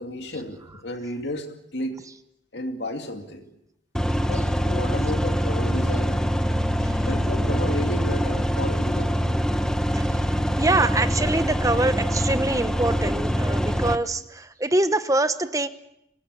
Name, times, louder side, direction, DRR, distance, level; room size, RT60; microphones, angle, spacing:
voice 1, 0.0-2.0 2.5-3.5 4.2-6.2 7.0-9.2, left 1 dB, 70° left, 5 dB, 2.5 m, -32 dB
sound 1, 3.9-14.0, equal, 5° left, 1.2 m, -24 dB
voice 2, 9.9-10.3 10.6-15.7, right 2 dB, 20° right, 11 dB, 0.9 m, -24 dB
25.5 x 19.5 x 8.3 m, 0.80 s
head